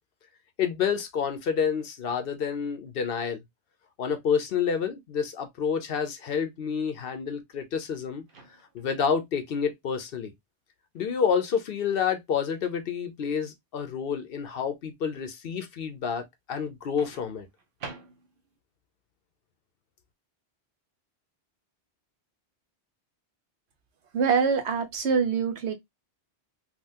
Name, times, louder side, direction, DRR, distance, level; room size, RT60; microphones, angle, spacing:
voice 1, 0.6-3.4 4.0-8.2 8.7-10.3 10.9-17.5, left 7 dB, 65° left, 0.8 m, -29 dB
Microwave oven, 8.3-9.0 10.9-11.2 17.0-18.6, right 4 dB, 55° right, 0.9 m, -46 dB
voice 2, 24.1-25.7, right 6 dB, 80° right, 1.0 m, -24 dB
3.6 x 2.4 x 2.6 m
omnidirectional pair, 1.1 m